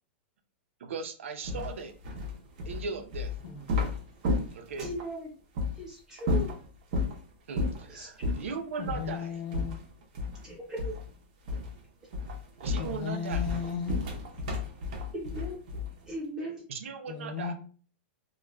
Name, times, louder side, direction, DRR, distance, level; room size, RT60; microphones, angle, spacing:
voice 1, 0.8-1.9 2.7-3.3 4.5-4.9 7.5-9.4 12.6-13.5 16.7-17.5, right 5 dB, 85° right, 0.6 m, -38 dB
sound 1, 1.4-5.1 5.6-5.7 6.2-7.2 7.6-7.9 8.2-8.5 8.9-9.1 9.5-10.5 10.8-11.1 11.5-11.8 12.1-16.1, left 3 dB, 40° right, 0.6 m, -32 dB
voice 2, 4.8-5.3 5.7-6.5 7.9-8.1 10.4-10.9 15.1-15.6 16.1-16.6, right 1 dB, 10° right, 0.9 m, -38 dB
voice 3, 8.8-9.8 12.8-14.0 17.1-17.5, left 6 dB, 45° left, 0.6 m, -35 dB
2.4 x 2.2 x 3.1 m
supercardioid pair, 180°, 7 cm